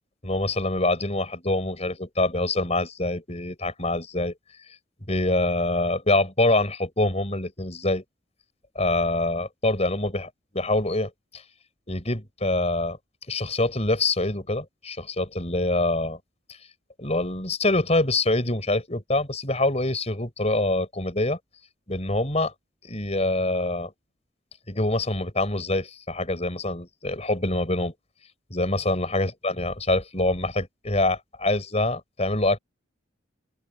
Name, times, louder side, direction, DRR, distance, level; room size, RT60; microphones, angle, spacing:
voice 1, 0.2-4.3 5.1-8.0 8.7-11.4 11.9-13.0 13.3-16.2 17.0-21.4 21.9-22.5 22.8-23.9 24.7-27.9 28.5-32.6, left 2 dB, 30° left, 5.9 m, -25 dB
open air
head